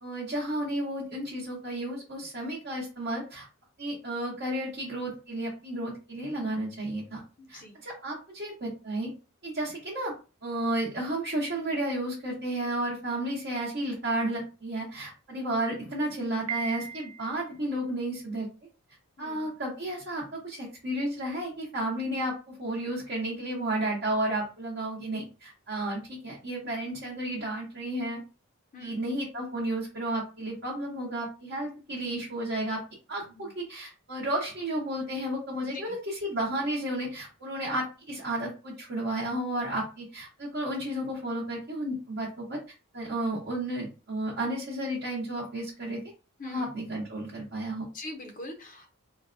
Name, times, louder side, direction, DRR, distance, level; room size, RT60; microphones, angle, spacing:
voice 1, 0.0-3.5 3.8-7.2 7.5-9.1 9.4-10.1 10.4-18.5 19.2-28.2 28.8-32.8 33.1-42.6 42.9-46.0 46.4-47.9, right 1 dB, 50° right, -5 dB, 0.9 m, -32 dB
voice 2, 7.4-7.8 19.2-19.5 28.7-29.0 33.3-33.5 35.8-36.0 46.4-46.7 47.9-48.9, left 1 dB, 35° left, 5 dB, 0.5 m, -43 dB
Piano, 16.5-17.5, right 6 dB, 70° right, 0.4 m, -36 dB
3.9 x 2.1 x 2.5 m, 0.32 s
head